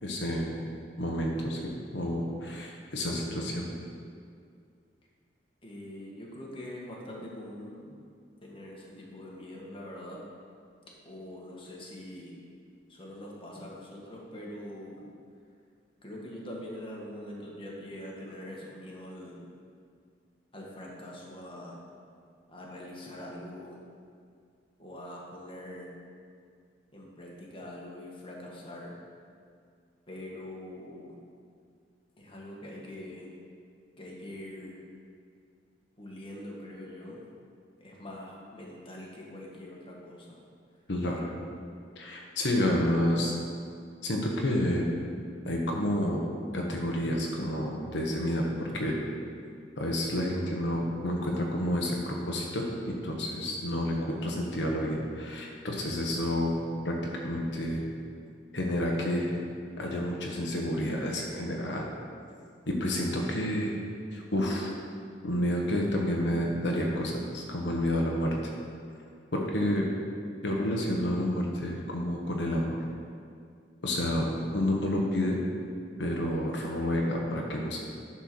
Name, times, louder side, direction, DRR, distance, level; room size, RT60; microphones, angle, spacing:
voice 1, 0.0-0.5 1.0-3.6 40.9-41.3 41.9-43.4 44.0-44.9 45.4-46.2 46.5-49.0 49.8-56.5 56.8-56.9 57.2-57.8 58.5-59.3 59.8-61.9 62.7-63.8 64.1-64.7 65.2-68.4 69.3-69.9 70.4-72.8 73.8-74.3 74.5-75.4 76.0-77.8, left 1 dB, 85° left, -1 dB, 1.2 m, -29 dB
voice 2, 5.6-7.9 8.4-10.2 11.0-12.3 12.9-15.0 16.0-19.4 20.5-21.8 22.5-23.8 24.8-25.9 26.9-29.0 30.1-31.2 32.2-33.3 34.0-34.8 36.0-37.2 37.8-40.4, left 1 dB, 30° left, -3 dB, 1.7 m, -43 dB
10.5 x 4.5 x 6.1 m, 2.3 s
head